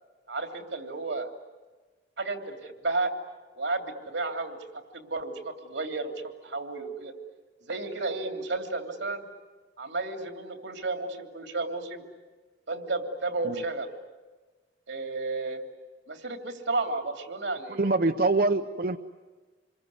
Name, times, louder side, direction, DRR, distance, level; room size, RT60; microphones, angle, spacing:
voice 1, 0.3-1.3 2.2-3.1 3.6-4.6 4.9-6.1 6.4-7.1 7.6-9.2 9.8-12.0 12.7-13.9 14.9-15.6 16.1-17.8, right 3 dB, 90° right, 5 dB, 3.0 m, -32 dB
voice 2, 17.7-19.0, right 3 dB, 55° right, 6 dB, 0.8 m, -25 dB
27.5 x 22.5 x 9.5 m, 1.3 s
head